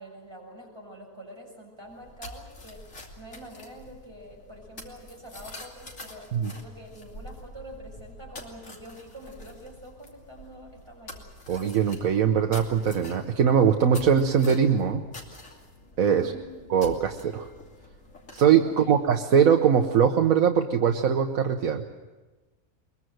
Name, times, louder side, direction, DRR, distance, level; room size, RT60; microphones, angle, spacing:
voice 1, 0.0-2.9 3.2-11.2 16.2-16.5 18.7-19.0, equal, 20° right, -1 dB, 7.1 m, -46 dB
sound 1, 1.8-19.8, left 1 dB, 65° left, 3.2 m, -47 dB
voice 2, 11.5-15.0 16.0-16.3 16.7-17.5 18.3-21.8, right 7 dB, 75° right, 3 dB, 1.4 m, -21 dB
22.5 x 22.0 x 7.8 m, 1.2 s
omnidirectional pair, 1.5 m